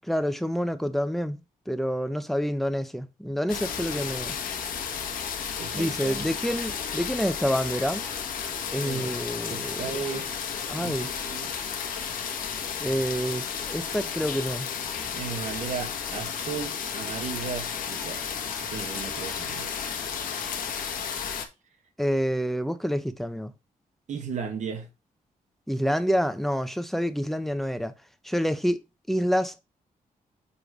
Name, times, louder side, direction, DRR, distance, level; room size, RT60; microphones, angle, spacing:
voice 1, 0.1-1.4 1.7-4.3 5.7-8.0 8.7-9.8 10.7-11.1 12.8-14.7 22.0-23.5 25.7-27.9 28.2-28.8 29.1-29.6, equal, ahead, 0.5 m, -27 dB
sound 1, 3.5-21.4, left 7 dB, 80° left, 1.1 m, -33 dB
voice 2, 5.6-6.3 8.8-9.2 9.5-10.4 10.7-11.6 15.1-18.3 18.6-19.7 24.1-24.9, right 6 dB, 60° right, 1.4 m, -36 dB
7.1 x 3.2 x 4.9 m
wide cardioid pair, 175°, 14 cm